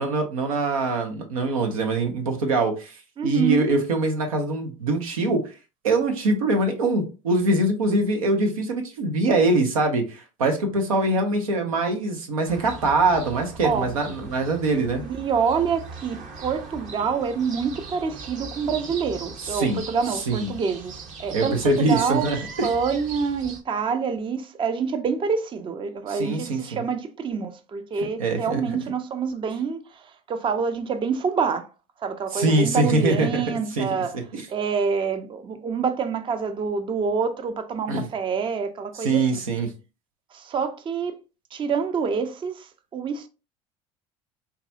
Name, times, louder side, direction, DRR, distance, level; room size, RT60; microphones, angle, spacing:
voice 1, 0.0-2.9 3.2-5.4 5.8-15.0 19.5-19.8 20.3-20.5 21.3-22.4 26.1-26.8 28.2-28.6 32.3-33.4 33.7-33.9 34.3-34.4 37.9-38.0 38.9-39.7, right 2 dB, 85° right, 0.8 m, -23 dB
voice 2, 3.2-3.7 13.6-13.9 15.0-31.7 32.0-34.1 34.5-39.4 40.3-41.2 41.5-43.3, right 5 dB, 30° right, 0.5 m, -27 dB
sound 1, 12.5-23.6, right 4 dB, 45° right, 0.9 m, -39 dB
3.9 x 2.3 x 2.7 m
hypercardioid pair, 70°, 17 cm